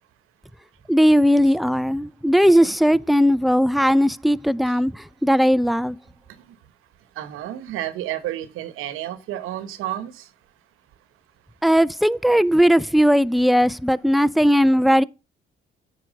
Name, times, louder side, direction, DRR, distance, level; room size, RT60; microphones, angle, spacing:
voice 1, 0.9-6.0 11.6-15.0, equal, ahead, 0.4 m, -18 dB
voice 2, 2.4-2.7 7.2-10.3, right 12 dB, 85° right, 1.0 m, -31 dB
9.3 x 4.6 x 6.3 m
supercardioid pair, 70°, 21 cm